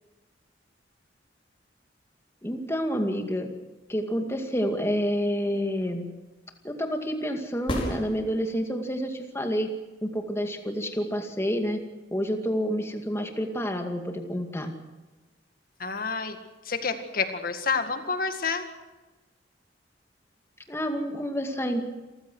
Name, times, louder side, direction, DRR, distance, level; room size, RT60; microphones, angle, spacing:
voice 1, 2.4-3.5 3.9-6.1 6.6-9.7 10.0-11.8 12.1-14.7 20.7-21.9, equal, 15° left, 4 dB, 2.2 m, -29 dB
sound 1, 7.6-8.8 12.7-12.8, left 1 dB, 30° left, 4.9 m, -32 dB
voice 2, 15.8-16.4 16.6-18.7, left 5 dB, 55° left, 7 dB, 2.0 m, -29 dB
28.0 x 15.0 x 6.3 m, 1.1 s
head